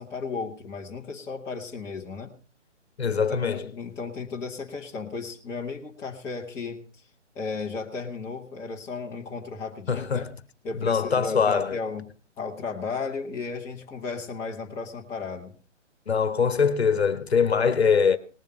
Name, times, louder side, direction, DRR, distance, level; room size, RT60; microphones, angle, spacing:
voice 1, 0.0-2.3 3.1-6.8 7.3-10.2 10.6-12.1 12.4-15.5, left 4 dB, 10° left, 1.2 m, -34 dB
voice 2, 3.0-3.7 9.9-10.3 10.7-11.8 16.1-18.2, left 6 dB, 60° left, 1.3 m, -23 dB
19.0 x 7.2 x 5.6 m
figure-of-eight pair, 140°, 36 cm